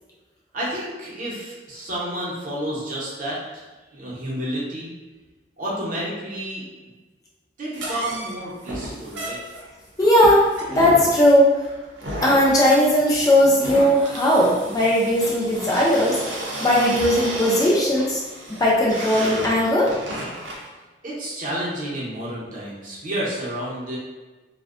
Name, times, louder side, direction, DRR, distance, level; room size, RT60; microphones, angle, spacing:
voice 1, 0.5-3.6 3.9-4.9 5.6-6.6 7.6-9.4 21.0-24.0, right 1 dB, 45° right, -6 dB, 0.7 m, -30 dB
sound 1, 7.7-20.7, right 1 dB, 90° right, 0.5 m, -33 dB
voice 2, 10.0-10.5 10.8-11.5 12.2-18.2 18.6-19.9, left 1 dB, 20° left, -4 dB, 0.3 m, -18 dB
2.5 x 2.1 x 2.4 m, 1.2 s
head